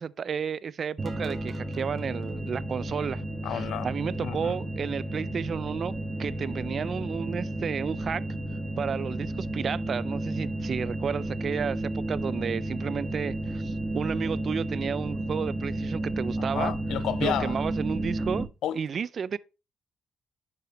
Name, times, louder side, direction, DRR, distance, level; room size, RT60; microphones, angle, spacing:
voice 1, 0.0-3.2 3.5-5.9 6.2-8.2 8.8-16.7 17.2-18.5 18.7-19.4, right 7 dB, 40° right, 0.3 m, -32 dB
sound 1, 1.0-18.4, right 1 dB, 20° right, 1.3 m, -32 dB
voice 2, 3.4-3.9 4.2-4.5 16.5-17.6 18.6-18.8, left 10 dB, 80° left, 0.5 m, -30 dB
10.0 x 6.0 x 2.9 m
cardioid pair, 135°, 0 cm